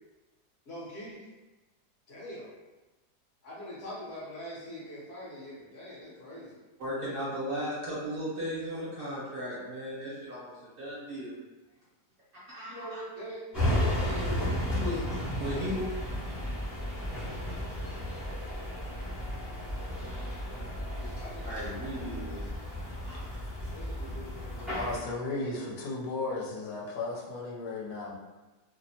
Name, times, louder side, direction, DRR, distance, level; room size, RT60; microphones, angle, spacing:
voice 1, 0.7-1.3 2.1-2.6 3.4-6.6 12.7-15.2 15.6-15.8 20.8-21.5 23.7-25.1 25.4-26.8, equal, 55° left, -6 dB, 0.8 m, -44 dB
voice 2, 6.8-11.3 12.5-13.0 14.7-15.9 21.4-22.4 23.1-23.3, equal, 50° right, -8 dB, 0.7 m, -36 dB
sound 1, 13.5-25.0, left 1 dB, ahead, 0.3 m, -33 dB
voice 3, 24.7-28.2, left 3 dB, 75° left, -3 dB, 1.1 m, -35 dB
2.7 x 2.1 x 2.6 m, 1.2 s
omnidirectional pair, 1.7 m